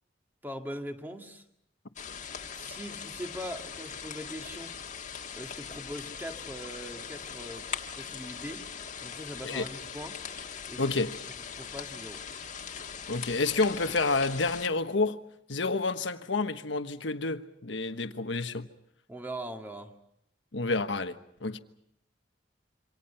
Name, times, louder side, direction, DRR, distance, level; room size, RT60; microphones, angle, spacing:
voice 1, 0.4-1.4 2.5-4.7 5.3-7.7 7.9-8.6 9.0-10.2 10.7-10.9 11.5-12.2 19.1-19.9, equal, 10° right, 2.0 m, -41 dB
sound 1, 2.0-14.7, left 7 dB, 40° left, 1.6 m, -41 dB
voice 2, 10.8-11.2 13.1-15.2 15.5-18.7 20.5-21.6, left 3 dB, 80° left, 1.3 m, -29 dB
27.5 x 25.5 x 5.8 m
head